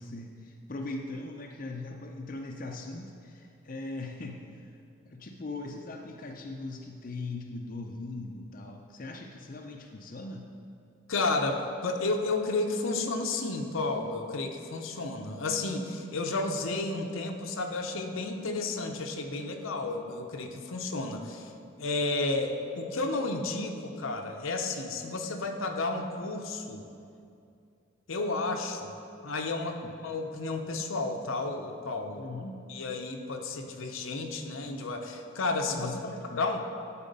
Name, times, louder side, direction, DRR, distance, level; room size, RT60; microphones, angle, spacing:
voice 1, 0.0-4.7 5.0-10.5 29.7-29.9 32.2-32.6 35.8-36.4, left 2 dB, 40° left, 2 dB, 0.5 m, -40 dB
voice 2, 11.1-21.5 21.8-26.8 28.1-28.9 29.2-32.3 32.7-36.7, left 3 dB, 80° left, 4 dB, 0.7 m, -32 dB
11.0 x 4.3 x 5.3 m, 2.5 s
head